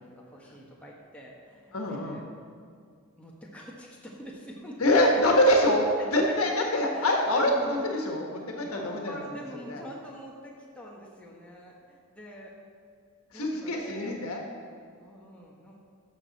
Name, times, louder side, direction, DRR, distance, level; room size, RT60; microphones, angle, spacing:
voice 1, 0.0-2.2 3.2-5.2 6.0-6.1 6.4-6.5 6.9-7.8 8.6-12.5 12.9-13.0 13.3-14.2 15.0-15.9, equal, 5° left, -4 dB, 1.3 m, -45 dB
voice 2, 1.7-2.2 4.8-9.4 9.7-9.8 13.3-14.4, left 1 dB, 80° left, 0 dB, 1.4 m, -25 dB
12.5 x 6.2 x 4.1 m, 2.1 s
head